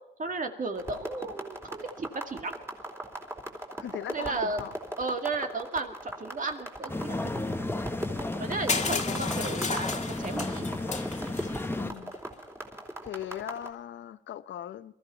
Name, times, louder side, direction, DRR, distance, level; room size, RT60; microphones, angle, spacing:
voice 1, 0.2-2.6 4.1-4.6 5.0-7.4 8.4-10.7, right 3 dB, 45° right, 2.2 m, -34 dB
sound 1, 0.7-13.7, right 1 dB, 15° right, 3.9 m, -39 dB
voice 2, 3.7-4.7 8.9-9.3 11.8-12.2 13.0-14.9, left 11 dB, 70° left, 0.7 m, -39 dB
sound 2, 6.9-11.9, left 2 dB, 10° left, 1.0 m, -33 dB
Crushing, 8.7-11.6, left 4 dB, 35° left, 2.0 m, -33 dB
22.5 x 14.5 x 4.3 m
cardioid pair, 85°, 20 cm